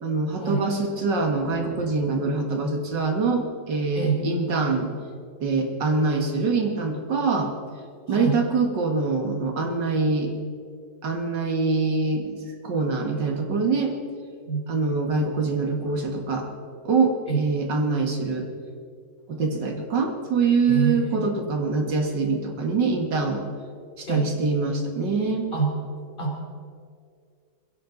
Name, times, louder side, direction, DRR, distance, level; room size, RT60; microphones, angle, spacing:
voice 1, 0.0-4.9 5.4-7.5 8.1-10.3 11.0-12.4 12.6-13.9 14.7-16.5 16.8-18.5 19.3-23.4 24.0-25.5, right 4 dB, 80° right, 3 dB, 2.5 m, -24 dB
voice 2, 20.7-21.5 24.1-24.3 25.5-25.8 26.2-26.5, right 4 dB, 25° left, -1 dB, 3.5 m, -26 dB
21.5 x 16.5 x 4.0 m, 2.2 s
omnidirectional pair, 1.9 m